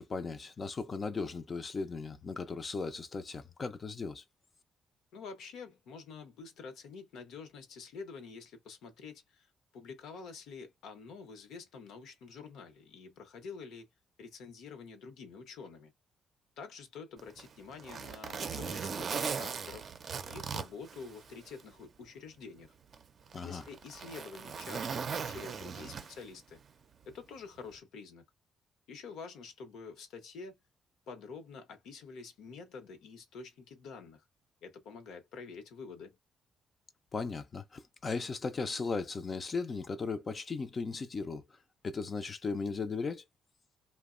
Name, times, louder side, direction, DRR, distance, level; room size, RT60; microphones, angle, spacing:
voice 1, 0.0-4.2 23.3-23.6 37.1-41.4 41.8-43.2, left 4 dB, 40° left, 0.4 m, -37 dB
voice 2, 5.1-9.5 9.7-13.9 14.2-15.9 16.6-19.9 20.3-22.7 23.4-26.6 27.1-28.2 28.9-30.6 31.1-34.2 34.6-36.2, left 5 dB, 80° left, 0.9 m, -47 dB
Zipper (clothing), 17.2-21.7 22.1-22.2 22.9-26.4 27.6-27.8, right 6 dB, 50° right, 0.5 m, -39 dB
2.8 x 2.1 x 2.4 m
cardioid pair, 90°, 0 cm